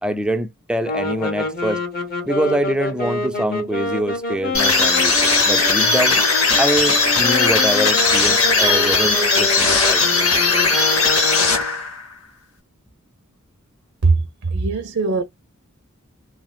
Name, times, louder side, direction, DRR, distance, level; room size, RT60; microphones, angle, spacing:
voice 1, 0.0-1.8 2.2-5.1 5.5-6.2 6.6-10.0, right 1 dB, 5° right, 0.4 m, -24 dB
sound 1, 0.8-11.8, left 2 dB, 45° left, 1.3 m, -27 dB
sound 2, 4.5-12.1, left 3 dB, 85° left, 1.9 m, -17 dB
voice 2, 14.0-15.2, right 3 dB, 65° right, 0.5 m, -20 dB
3.1 x 2.8 x 2.3 m
head